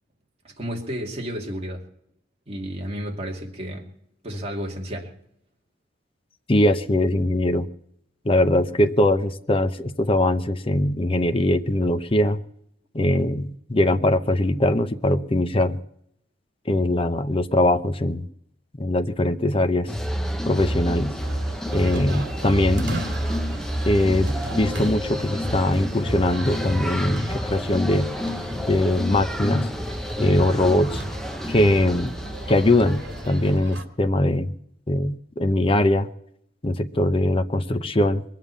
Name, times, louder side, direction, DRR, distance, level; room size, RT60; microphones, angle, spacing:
voice 1, 0.4-1.9 2.5-3.9 4.2-5.1, equal, 35° right, 2.3 m, -32 dB
voice 2, 6.5-7.7 8.2-12.4 12.9-15.8 16.7-18.3 18.8-19.9 20.5-21.1 21.7-23.0 23.8-28.1 28.7-29.7 30.2-31.0 31.5-32.1 32.5-34.5 34.9-36.1 36.6-38.2, left 1 dB, 30° left, 0.7 m, -21 dB
sound 1, 19.9-33.6, equal, 5° left, 1.0 m, -29 dB
sound 2, 21.2-33.8, right 1 dB, 70° right, 2.4 m, -37 dB
21.5 x 7.4 x 8.3 m
head